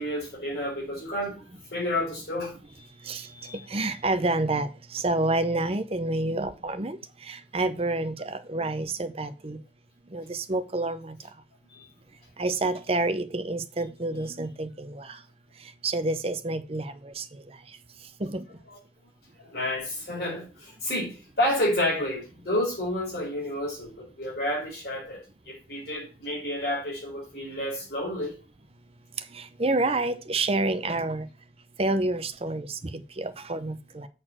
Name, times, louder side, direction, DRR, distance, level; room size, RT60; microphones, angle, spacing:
voice 1, 0.0-1.4 1.7-3.6 3.9-4.0 6.2-6.5 11.7-11.8 19.4-28.3, left 1 dB, 60° left, 4.9 m, -30 dB
voice 2, 3.7-7.0 7.3-9.6 10.1-11.2 12.4-15.2 15.8-17.2 18.2-18.4 29.3-31.3 31.8-34.1, right 2 dB, 35° right, 0.7 m, -28 dB
7.8 x 4.4 x 6.0 m
head